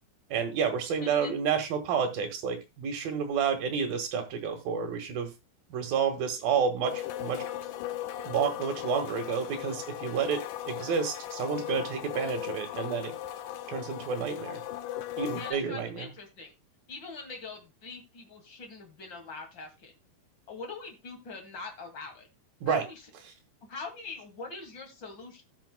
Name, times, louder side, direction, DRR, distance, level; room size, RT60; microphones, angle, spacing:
voice 1, 0.3-5.3 5.7-7.4 8.3-10.4 10.7-13.1 13.7-14.6 15.2-16.1 22.6-22.8, right 6 dB, 65° right, 5 dB, 3.3 m, -30 dB
voice 2, 1.0-1.3 15.3-16.5 16.9-19.9 20.5-22.3 22.7-23.0 23.6-25.4, left 3 dB, 35° left, 3 dB, 2.2 m, -43 dB
sound 1, 6.8-15.5, left 12 dB, 75° left, 2.1 m, -37 dB
17.5 x 6.0 x 2.2 m, 0.24 s
omnidirectional pair, 4.7 m